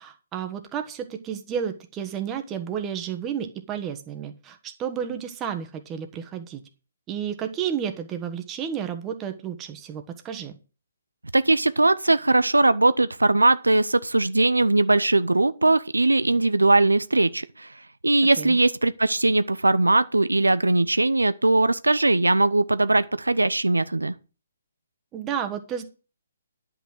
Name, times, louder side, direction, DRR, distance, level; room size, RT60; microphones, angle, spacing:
voice 1, 0.0-6.6 7.1-10.5 18.4-18.6 25.1-25.8, right 8 dB, 20° right, 1.4 m, -31 dB
voice 2, 11.3-17.7 18.0-24.1, right 2 dB, 90° right, 0.5 m, -20 dB
10.0 x 6.0 x 6.4 m
figure-of-eight pair, 135°, 0 cm